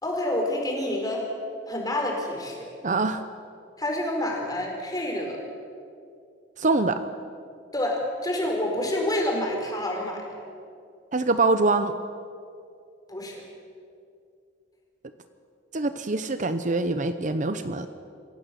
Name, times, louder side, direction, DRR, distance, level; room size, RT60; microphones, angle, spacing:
voice 1, 0.0-1.3 1.7-2.7 3.8-5.4 7.7-10.3 13.1-13.4, left 1 dB, 20° left, 0 dB, 4.5 m, -28 dB
voice 2, 2.8-3.2 6.6-7.1 11.1-11.9 15.7-17.9, right 3 dB, 45° right, 10 dB, 0.8 m, -24 dB
27.0 x 16.5 x 7.0 m, 2.4 s
head